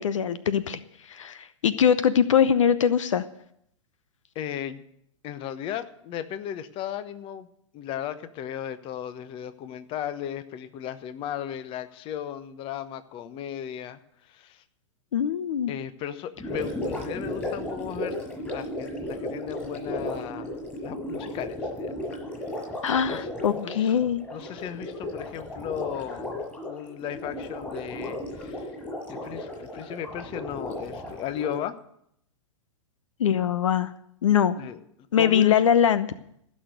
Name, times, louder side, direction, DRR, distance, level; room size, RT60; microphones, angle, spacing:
voice 1, 0.0-3.3 15.1-15.7 22.8-24.2 33.2-33.9 34.2-34.6 35.1-36.1, left 8 dB, 75° left, 14 dB, 0.8 m, -22 dB
voice 2, 4.3-4.8 5.2-7.5 7.7-14.0 14.3-14.6 15.7-18.1 18.4-22.2 23.1-23.2 23.5-23.9 24.3-26.3 26.7-28.7 29.1-31.8 34.6-34.8 35.2-35.7, left 10 dB, 35° left, 12 dB, 1.0 m, -36 dB
Gurgling, 16.4-31.7, left 1 dB, 10° left, 6.4 m, -35 dB
15.5 x 6.4 x 9.2 m, 0.73 s
hypercardioid pair, 115°, 16 cm